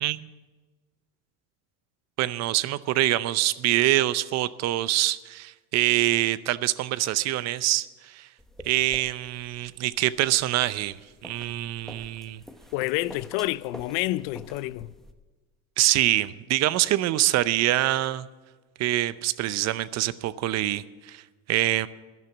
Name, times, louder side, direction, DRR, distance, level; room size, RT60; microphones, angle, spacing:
voice 1, 2.2-7.9 8.1-8.3 8.6-11.0 11.2-12.4 15.8-18.3 18.8-21.2 21.5-21.9, right 15 dB, 50° right, 0.6 m, -25 dB
sound 1, 8.4-15.1, equal, ahead, 1.1 m, -48 dB
voice 2, 12.7-14.9, left 17 dB, 80° left, 0.6 m, -28 dB
12.0 x 10.5 x 7.1 m
supercardioid pair, 105°, 33 cm